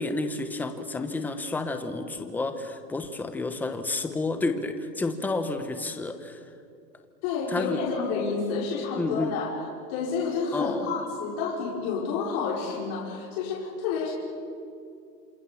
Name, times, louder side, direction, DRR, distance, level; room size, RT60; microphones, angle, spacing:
voice 1, 0.0-6.5 7.5-7.8 9.0-9.4 10.5-10.9, left 3 dB, 5° left, 8 dB, 1.0 m, -30 dB
voice 2, 7.2-9.5 9.9-14.1, left 5 dB, 35° left, -4 dB, 5.2 m, -29 dB
28.0 x 26.5 x 7.1 m, 2.5 s
hypercardioid pair, 155°, 50 cm